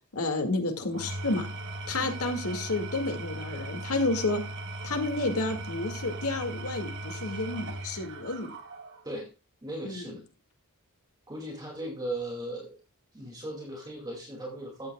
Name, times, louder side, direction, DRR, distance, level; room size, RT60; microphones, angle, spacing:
voice 1, 0.1-1.5 1.9-4.4 4.8-8.5 9.8-10.2, left 2 dB, 75° left, 5 dB, 2.0 m, -30 dB
Engine / Tools, 0.8-9.1, right 1 dB, 55° right, 1.6 m, -38 dB
voice 2, 9.6-10.2 11.3-12.8 13.1-14.9, right 1 dB, 20° right, 0 dB, 2.3 m, -37 dB
13.5 x 8.7 x 2.3 m, 0.30 s
head